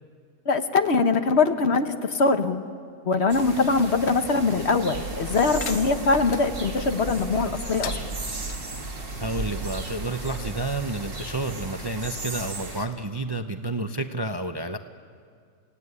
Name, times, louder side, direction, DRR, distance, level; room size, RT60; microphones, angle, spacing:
voice 1, 0.4-2.6 3.0-8.0, left 4 dB, 55° left, 8 dB, 1.4 m, -22 dB
sound 1, 3.3-12.9, right 2 dB, 40° right, 2.3 m, -37 dB
sound 2, 4.9-12.2, right 3 dB, 90° right, 1.8 m, -37 dB
sound 3, 5.6-6.4 7.7-8.6, left 8 dB, 70° left, 1.2 m, -39 dB
voice 2, 9.2-14.8, right 2 dB, 25° right, 7 dB, 0.6 m, -30 dB
29.0 x 17.0 x 9.8 m, 2.2 s
omnidirectional pair, 1.4 m